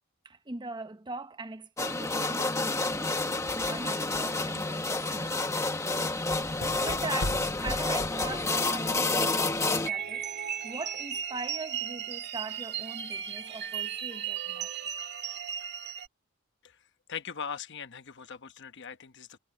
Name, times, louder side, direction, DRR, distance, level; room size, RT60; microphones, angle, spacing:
voice 1, 0.2-3.3 3.6-5.7 6.8-10.2 10.6-14.8, right 3 dB, 20° right, 0.9 m, -41 dB
sound 1, 1.8-9.9, left 2 dB, 15° left, 1.2 m, -29 dB
sound 2, 3.2-8.9, left 1 dB, 80° left, 2.8 m, -41 dB
sound 3, 9.8-16.1, right 8 dB, 55° right, 1.7 m, -36 dB
voice 2, 17.1-19.4, left 6 dB, 55° left, 1.0 m, -40 dB
head